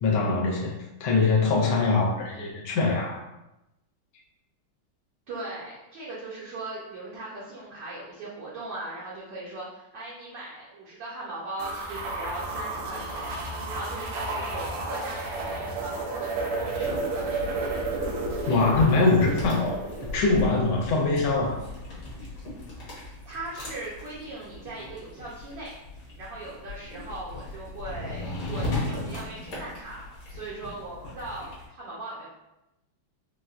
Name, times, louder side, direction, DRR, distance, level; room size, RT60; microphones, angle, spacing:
voice 1, 0.0-3.2 18.5-19.8 20.1-21.6, left 3 dB, 75° left, -2 dB, 1.4 m, -23 dB
voice 2, 5.3-17.5 23.0-25.7 26.2-32.3, right 2 dB, 65° right, -7 dB, 1.2 m, -39 dB
sound 1, 11.6-20.2, right 3 dB, 85° right, 1.6 m, -32 dB
sound 2, 16.8-31.6, left 2 dB, 50° left, 1.3 m, -37 dB
4.1 x 2.2 x 2.4 m, 0.92 s
omnidirectional pair, 2.4 m